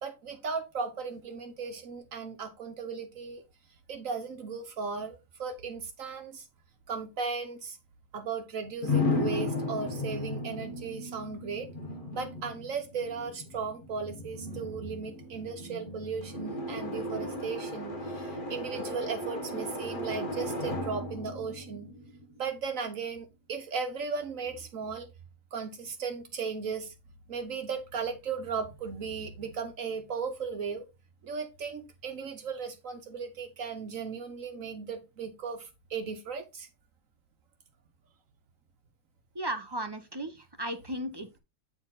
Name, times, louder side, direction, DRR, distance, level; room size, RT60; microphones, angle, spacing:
voice 1, 0.0-3.4 3.9-6.4 6.9-7.8 8.1-11.7 12.1-21.9 22.4-25.1 25.5-26.9 27.3-30.9 31.2-36.7, right 5 dB, 70° right, 1.3 m, -36 dB
sound 1, 8.8-22.6, left 2 dB, 40° left, 1.3 m, -35 dB
voice 2, 39.3-41.4, right 1 dB, 25° right, 0.6 m, -35 dB
8.6 x 4.4 x 3.8 m
omnidirectional pair, 1.5 m